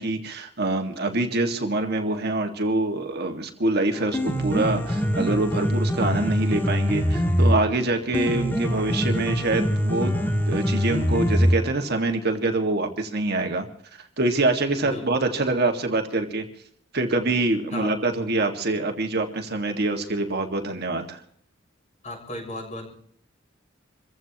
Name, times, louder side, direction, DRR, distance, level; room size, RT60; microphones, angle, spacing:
voice 1, 0.0-10.1 10.5-13.7 14.2-16.4 16.9-21.2, right 2 dB, 55° right, 4 dB, 1.9 m, -25 dB
Piano, 3.9-11.9, equal, 10° left, 2.0 m, -24 dB
voice 2, 22.0-22.9, left 1 dB, 40° left, 2 dB, 7.0 m, -34 dB
28.0 x 15.5 x 3.0 m, 0.62 s
head